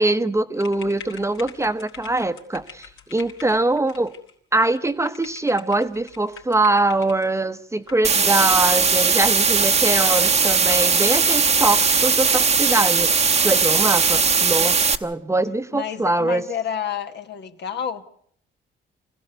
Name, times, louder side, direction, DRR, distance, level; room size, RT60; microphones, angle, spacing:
voice 1, 0.0-4.1 4.5-16.4, right 2 dB, 15° right, 1.0 m, -23 dB
sound 1, 0.6-7.3 7.9-8.4 8.7-8.8 9.1-10.3 10.7-10.9, left 7 dB, 80° left, 3.9 m, -44 dB
sound 2, 8.0-15.0, right 5 dB, 35° right, 1.0 m, -19 dB
voice 2, 15.7-18.0, left 8 dB, 60° left, 1.4 m, -29 dB
25.0 x 15.5 x 8.0 m
cardioid pair, 90°, 20 cm